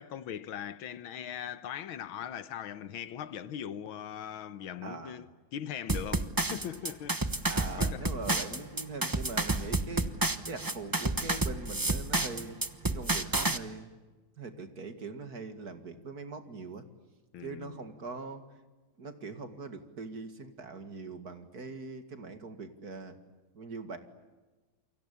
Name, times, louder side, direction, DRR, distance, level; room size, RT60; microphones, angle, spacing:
voice 1, 0.0-5.3 5.5-7.2 7.8-8.1 17.3-17.8, left 9 dB, 85° left, 1.9 m, -40 dB
voice 2, 4.8-5.2 7.5-10.1 10.5-12.6 12.9-13.9 14.4-16.8 17.4-18.4 19.0-23.2 23.5-24.0, right 3 dB, 50° right, 2.5 m, -42 dB
sound 1, 5.9-13.6, right 2 dB, 15° right, 0.7 m, -30 dB
29.0 x 24.0 x 8.5 m
omnidirectional pair, 2.2 m